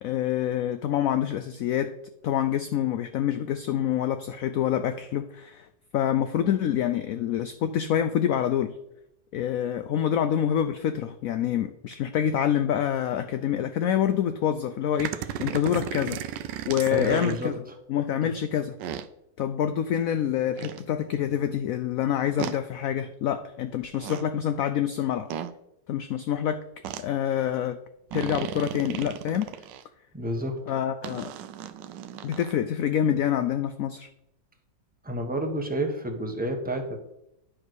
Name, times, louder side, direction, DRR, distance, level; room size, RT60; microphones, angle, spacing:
voice 1, 0.0-1.9 2.2-5.7 5.9-8.7 9.3-16.2 16.7-17.5 17.9-18.8 19.4-25.3 25.9-26.6 27.0-27.8 28.1-29.5 30.7-31.3 32.2-34.1, left 10 dB, 70° left, 10 dB, 0.8 m, -26 dB
sound 1, 15.0-17.5 18.8-19.1 20.6-20.8 22.4-22.6 23.8-24.2 25.3-25.5 26.8-27.0 28.1-29.8 31.0-32.5, right 10 dB, 85° right, 1.3 m, -35 dB
voice 2, 16.9-17.6 18.2-18.3 30.1-30.6 35.0-37.0, right 1 dB, 5° right, 3 dB, 1.0 m, -30 dB
10.0 x 4.9 x 6.2 m, 0.83 s
omnidirectional pair, 1.9 m